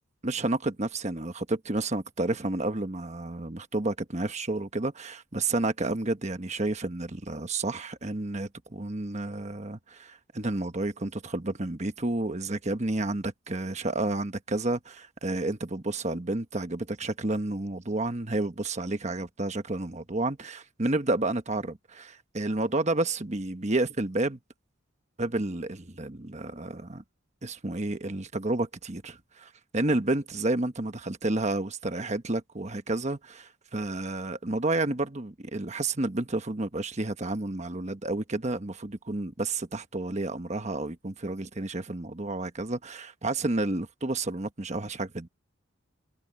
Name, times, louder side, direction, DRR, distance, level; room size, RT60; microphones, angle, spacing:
voice 1, 0.2-24.4 25.2-27.0 27.4-45.3, right 2 dB, 35° right, 1.3 m, -30 dB
head